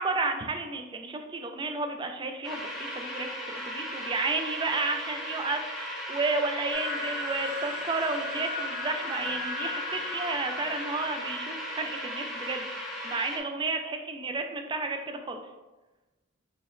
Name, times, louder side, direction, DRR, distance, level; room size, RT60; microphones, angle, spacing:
voice 1, 0.0-12.7 13.0-15.4, right 3 dB, 20° right, 5 dB, 0.3 m, -32 dB
sound 1, 2.4-13.4, equal, ahead, 0.7 m, -37 dB
sound 2, 6.7-11.8, left 3 dB, 75° left, 0.8 m, -37 dB
5.0 x 2.9 x 2.5 m, 1.1 s
head